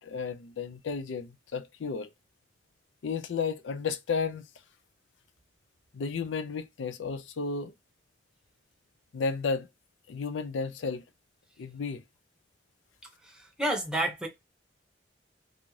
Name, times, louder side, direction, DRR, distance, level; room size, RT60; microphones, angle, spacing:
voice 1, 0.0-2.1 3.0-4.5 5.9-7.7 9.1-9.7 10.1-11.0 11.6-12.0, left 5 dB, 90° left, 0.4 m, -33 dB
voice 2, 13.2-14.3, right 1 dB, 5° right, 0.7 m, -30 dB
2.6 x 2.3 x 3.1 m
head